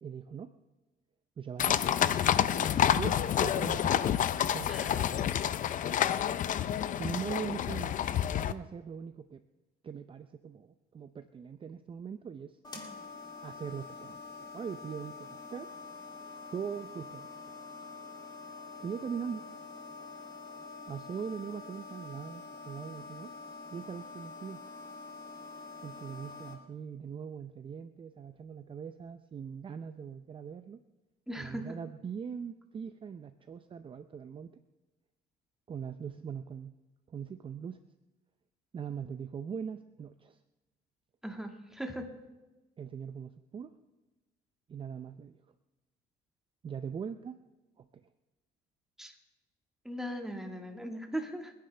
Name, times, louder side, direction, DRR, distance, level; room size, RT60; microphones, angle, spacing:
voice 1, 0.0-0.5 1.4-1.8 2.9-4.1 4.4-5.3 6.9-8.0 8.4-9.4 9.8-12.6 13.4-16.0 16.5-17.5 18.8-19.4 20.9-23.3 23.7-24.6 25.8-30.8 31.4-34.5 35.7-36.7 37.1-37.8 38.7-40.4 42.8-43.7 44.7-45.4 46.6-47.4 47.8-48.1, right 7 dB, 30° right, 10 dB, 0.5 m, -41 dB
sound 1, 1.6-8.5, left 10 dB, 50° left, 0.6 m, -28 dB
sound 2, 12.6-26.5, left 4 dB, 25° left, 2.8 m, -46 dB
voice 2, 31.3-31.8 41.2-42.0 49.0-49.1 49.9-51.5, equal, 5° right, 3 dB, 1.8 m, -39 dB
28.0 x 10.5 x 3.4 m, 1.1 s
cardioid pair, 110°, 17 cm